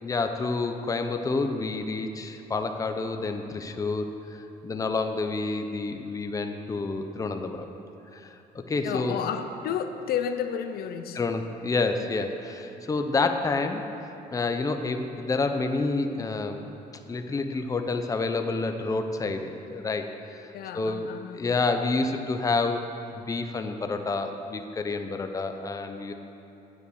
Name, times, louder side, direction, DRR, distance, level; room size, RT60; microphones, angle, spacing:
voice 1, 0.0-7.6 8.1-9.2 11.1-13.8 14.3-16.7 17.1-21.1 21.3-22.8 23.1-26.1, left 3 dB, 20° left, 6 dB, 0.7 m, -29 dB
voice 2, 8.8-11.2 20.5-21.4, left 8 dB, 65° left, 8 dB, 0.7 m, -31 dB
9.2 x 8.5 x 6.5 m, 3.0 s
cardioid pair, 110°, 17 cm